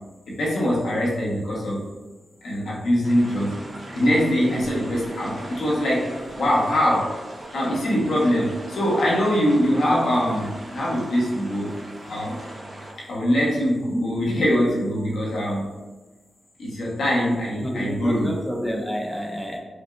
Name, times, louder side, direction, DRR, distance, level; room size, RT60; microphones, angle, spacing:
voice 1, 0.3-1.8 2.4-3.6 3.9-7.1 7.5-11.7 12.0-12.4 13.0-15.7 16.6-18.3, equal, 85° left, -4 dB, 1.0 m, -23 dB
sound 1, 3.0-12.9, right 1 dB, 40° right, 0.9 m, -40 dB
voice 2, 17.6-19.6, equal, ahead, 1 dB, 0.4 m, -29 dB
4.9 x 2.4 x 2.4 m, 1.2 s
wide cardioid pair, 90°, 0 cm